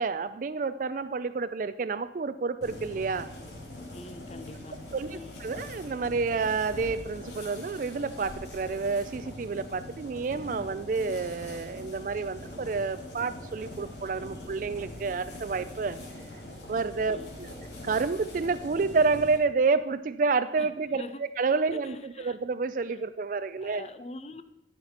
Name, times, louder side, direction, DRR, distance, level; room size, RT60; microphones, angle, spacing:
voice 1, 0.0-3.3 4.7-16.0 16.7-17.5 17.8-23.9, right 4 dB, 45° right, 12 dB, 0.4 m, -29 dB
sound 1, 2.6-19.4, left 1 dB, 70° left, 2.7 m, -43 dB
voice 2, 3.9-5.4 17.1-17.3 20.6-20.7 21.0-21.2 21.7-22.4 23.6-24.4, left 2 dB, 35° left, 11 dB, 0.6 m, -44 dB
13.0 x 5.8 x 4.3 m, 0.88 s
head